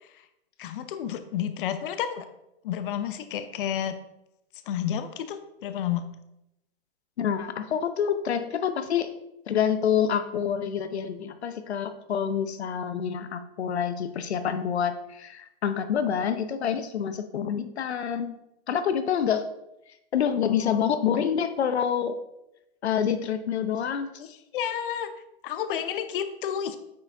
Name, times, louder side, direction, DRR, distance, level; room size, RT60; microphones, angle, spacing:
voice 1, 0.6-2.3 2.6-3.9 4.7-6.0 20.5-20.9 24.2-25.1 25.4-26.8, left 9 dB, 55° left, 10 dB, 0.8 m, -31 dB
voice 2, 7.2-9.1 9.5-18.4 18.7-19.5 20.1-22.2 22.8-24.1, left 8 dB, 85° left, 10 dB, 0.8 m, -27 dB
9.3 x 4.7 x 3.4 m, 0.86 s
hypercardioid pair, 135°, 32 cm